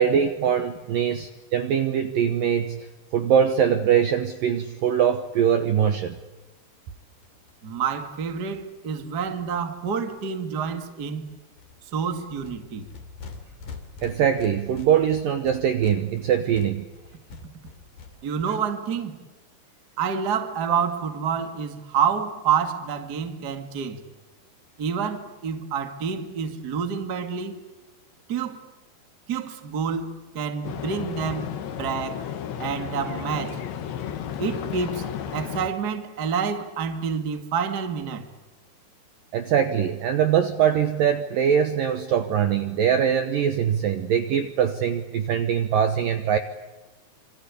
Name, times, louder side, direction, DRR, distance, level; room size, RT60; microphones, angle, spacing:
voice 1, 0.0-2.9 3.1-6.1 14.0-16.8 39.3-46.4, right 8 dB, 70° right, 2.1 m, -22 dB
sound 1, 6.1-6.2 6.4-6.5 6.7-6.8 7.0-10.2 10.6-10.9 11.2-18.4, left 4 dB, 50° left, 4.1 m, -45 dB
voice 2, 7.6-11.2 11.9-12.9 18.2-19.2 20.0-24.0 24.8-27.6 28.3-28.6 29.3-32.2 32.6-33.6 34.4-35.0 35.3-38.3, right 6 dB, 45° right, 1.3 m, -28 dB
sound 2, 30.6-35.7, left 9 dB, 70° left, 3.9 m, -33 dB
27.0 x 25.5 x 8.4 m
omnidirectional pair, 5.5 m